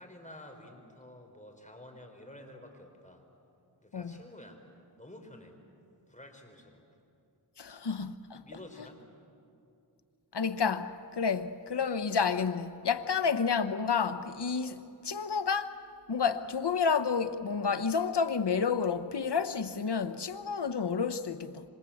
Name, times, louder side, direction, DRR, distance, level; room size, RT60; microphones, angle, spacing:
voice 1, 0.0-3.2 3.8-4.6 5.0-5.5 6.1-6.8 8.4-9.0 13.0-13.1, left 1 dB, 20° left, 4.4 m, -50 dB
voice 2, 7.6-8.4 10.3-15.7 16.1-21.6, left 6 dB, 75° left, 1.1 m, -30 dB
26.5 x 26.0 x 8.6 m
wide cardioid pair, 50°, 41 cm